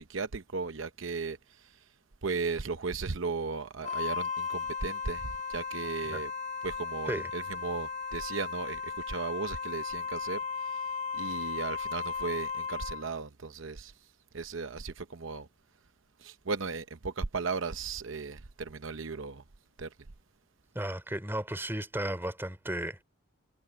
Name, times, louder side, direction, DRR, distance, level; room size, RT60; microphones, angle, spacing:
voice 1, 0.0-1.7 2.2-6.3 6.6-10.4 10.7-10.8 11.1-13.9 14.3-15.5 16.2-19.4 19.8-19.9, right 4 dB, 65° right, 0.8 m, -36 dB
Wind instrument woodwind instrument, 3.8-13.1, left 5 dB, 35° left, 2.7 m, -36 dB
voice 2, 20.7-23.0, right 1 dB, 10° right, 2.9 m, -34 dB
head